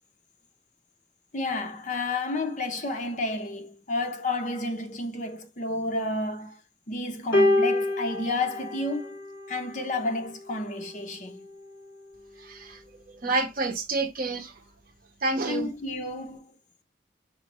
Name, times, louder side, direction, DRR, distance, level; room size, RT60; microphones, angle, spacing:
voice 1, 1.3-6.6 6.9-9.2 9.5-11.4 15.5-16.5, left 2 dB, 45° left, 0.7 m, -31 dB
sound 1, 7.3-9.8 10.8-11.0, left 2 dB, 65° left, 1.9 m, -26 dB
voice 2, 12.4-12.8 13.1-14.5 15.2-15.7, right 3 dB, 50° right, 0.9 m, -29 dB
5.3 x 2.6 x 3.0 m
head